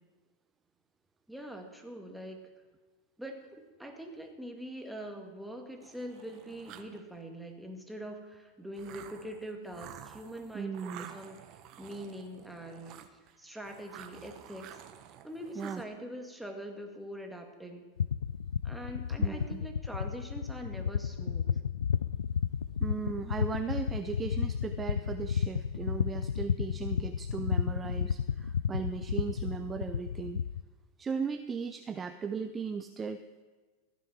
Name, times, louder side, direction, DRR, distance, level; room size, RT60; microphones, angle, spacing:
voice 1, 1.3-2.4 3.2-11.4 11.8-14.7 15.2-17.9 18.6-21.5, right 1 dB, ahead, 2 dB, 2.0 m, -43 dB
sound 1, 5.8-7.2 8.8-13.3 13.6-15.8, right 10 dB, 45° right, 1.0 m, -50 dB
voice 2, 10.5-11.1 15.5-15.8 19.2-19.6 22.8-30.4 31.0-33.2, right 5 dB, 20° right, 9 dB, 0.6 m, -37 dB
sound 2, 18.0-30.6, left 7 dB, 85° left, 0.3 m, -32 dB
15.0 x 9.2 x 4.7 m, 1.3 s
hypercardioid pair, 95°, 0 cm